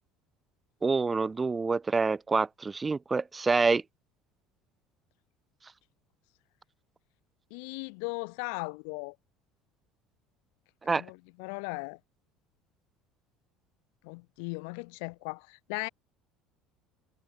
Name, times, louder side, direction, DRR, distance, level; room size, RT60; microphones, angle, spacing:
voice 1, 0.8-3.8 10.9-11.0, right 4 dB, 25° right, 5.0 m, -27 dB
voice 2, 7.5-9.1 10.8-12.0 14.0-15.9, left 39 dB, 70° left, 7.7 m, -38 dB
hypercardioid pair, 65°, 0 cm